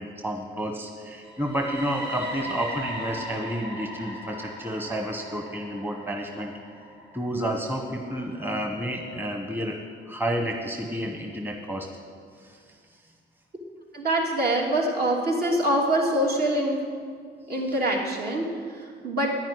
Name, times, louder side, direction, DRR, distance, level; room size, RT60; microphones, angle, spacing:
voice 1, 0.0-6.5 7.1-9.8 10.1-11.9 12.4-12.6 17.6-17.8, equal, 10° right, 3 dB, 1.5 m, -30 dB
sound 1, 1.2-9.1, equal, 70° right, 3.9 m, -39 dB
voice 2, 13.9-16.8 17.5-19.3, right 1 dB, 50° right, -1 dB, 3.2 m, -25 dB
10.5 x 10.0 x 9.8 m, 2.1 s
cardioid pair, 90°, 20 cm